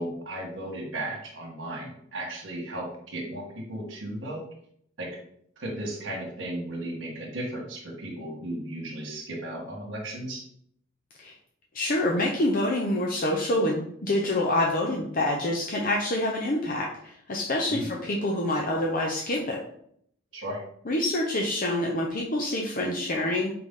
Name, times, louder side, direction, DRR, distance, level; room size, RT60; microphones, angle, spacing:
voice 1, 0.0-4.4 5.0-5.1 5.6-10.4 17.7-17.9 20.3-20.6, right 1 dB, 70° right, -2 dB, 1.6 m, -35 dB
voice 2, 11.7-19.6 20.9-23.5, left 1 dB, 45° left, -1 dB, 0.8 m, -26 dB
5.3 x 4.8 x 3.8 m, 0.67 s
head